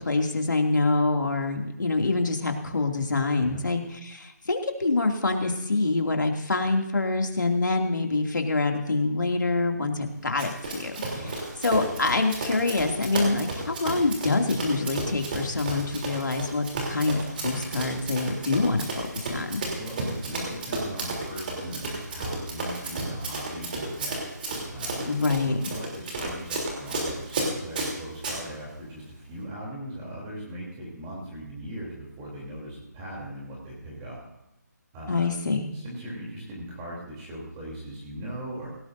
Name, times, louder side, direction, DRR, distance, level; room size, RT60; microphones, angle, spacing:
voice 1, 0.0-10.9 11.6-18.9 19.3-19.6 25.1-25.6 35.1-35.7, left 3 dB, 85° left, 3 dB, 2.5 m, -26 dB
Run, 10.4-28.4, right 2 dB, 30° right, 3.2 m, -33 dB
voice 2, 11.0-11.4 19.7-24.2 24.7-25.1 25.4-34.2 34.9-35.3 35.7-38.7, right 1 dB, 15° right, -4 dB, 3.2 m, -39 dB
18.0 x 17.5 x 2.7 m, 0.88 s
hypercardioid pair, 170°, 10 cm